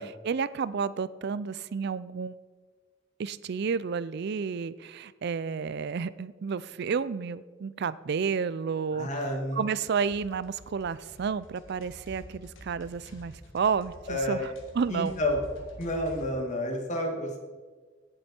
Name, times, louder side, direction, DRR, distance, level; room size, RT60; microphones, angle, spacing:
voice 1, 0.0-2.4 3.2-9.1 9.5-15.1, right 6 dB, 60° right, 17 dB, 0.4 m, -31 dB
voice 2, 8.9-9.6 14.1-14.5 14.9-15.4 15.8-17.4, left 1 dB, 40° left, 2 dB, 2.0 m, -30 dB
sound 1, 9.9-16.3, equal, 90° left, 2.1 m, -48 dB
17.5 x 7.9 x 4.4 m, 1.4 s
head